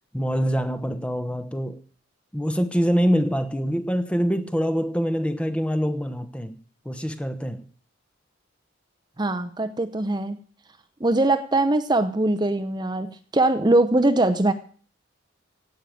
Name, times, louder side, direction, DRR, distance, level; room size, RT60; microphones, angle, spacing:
voice 1, 0.1-1.8 2.3-6.6 6.8-7.6, equal, 5° left, 0.9 m, -25 dB
voice 2, 9.2-10.4 11.0-14.5, right 2 dB, 20° right, 0.7 m, -22 dB
16.5 x 6.5 x 9.2 m
head